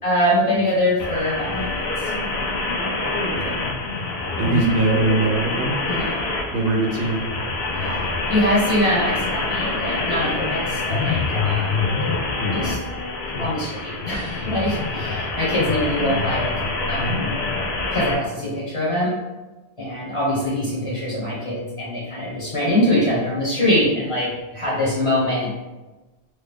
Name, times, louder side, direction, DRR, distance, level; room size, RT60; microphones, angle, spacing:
voice 1, 0.0-2.1 5.9-6.3 7.8-8.0 8.3-11.8 12.5-12.8 13.4-16.5 16.9-17.3 17.9-19.2 19.8-25.5, left 1 dB, 35° left, -6 dB, 0.9 m, -23 dB
sound 1, 1.0-18.1, left 3 dB, 85° left, 0.8 m, -25 dB
voice 2, 4.3-5.7 6.5-7.2, right 2 dB, 70° right, -1 dB, 0.8 m, -21 dB
3.1 x 2.3 x 3.4 m, 1.1 s
omnidirectional pair, 1.0 m